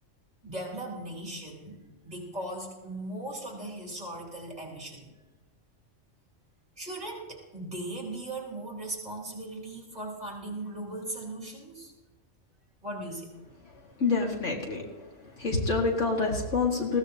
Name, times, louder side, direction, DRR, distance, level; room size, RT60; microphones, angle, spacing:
voice 1, 0.4-5.1 6.8-11.9 12.8-13.3, right 1 dB, 30° right, -2 dB, 3.8 m, -38 dB
voice 2, 14.0-14.8 15.4-17.0, left 4 dB, 70° left, 0 dB, 2.3 m, -27 dB
20.0 x 16.0 x 2.9 m, 1.2 s
omnidirectional pair, 1.3 m